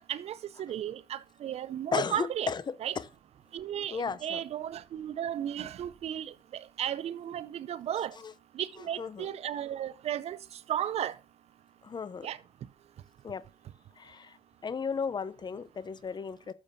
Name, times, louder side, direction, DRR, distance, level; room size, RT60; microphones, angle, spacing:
voice 1, 0.1-2.5 2.8-2.9 3.5-8.1 8.5-10.4 10.7-11.1 12.2-12.4, right 10 dB, 60° right, 0.5 m, -34 dB
voice 2, 1.9-2.6 3.0-3.1 3.9-4.4 8.2-8.3 9.0-9.3 11.8-12.3 13.2-13.4 14.0-14.4 14.6-16.5, left 5 dB, 40° left, 0.6 m, -34 dB
11.5 x 7.0 x 2.7 m
supercardioid pair, 65°, 12 cm